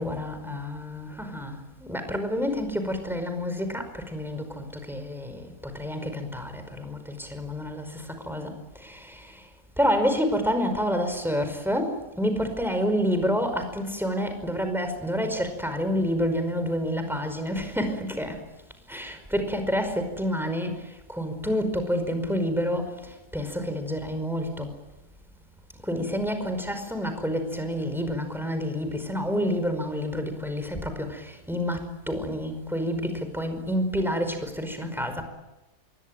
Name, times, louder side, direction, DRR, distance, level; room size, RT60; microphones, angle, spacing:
voice 1, 0.0-9.4 9.8-18.4 18.9-24.7 25.8-35.2, equal, ahead, 7 dB, 5.1 m, -29 dB
27.5 x 23.0 x 9.1 m, 0.99 s
omnidirectional pair, 1.7 m